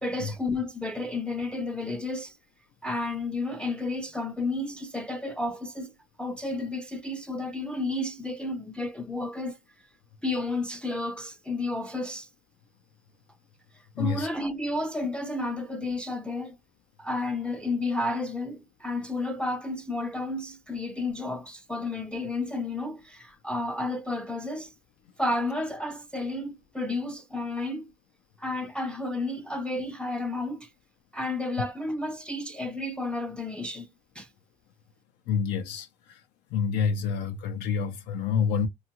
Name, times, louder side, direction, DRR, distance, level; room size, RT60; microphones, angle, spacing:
voice 1, 0.0-2.3 2.8-5.9 6.2-9.6 10.2-12.3 14.0-16.6 17.0-24.7 25.2-27.9 28.4-30.7 31.1-33.9 34.2-34.3, left 2 dB, 5° left, 0.3 m, -31 dB
voice 2, 13.9-14.3 35.3-36.2 36.5-38.7, left 6 dB, 85° left, 0.4 m, -28 dB
2.8 x 2.3 x 2.8 m
cardioid pair, 110°, 17 cm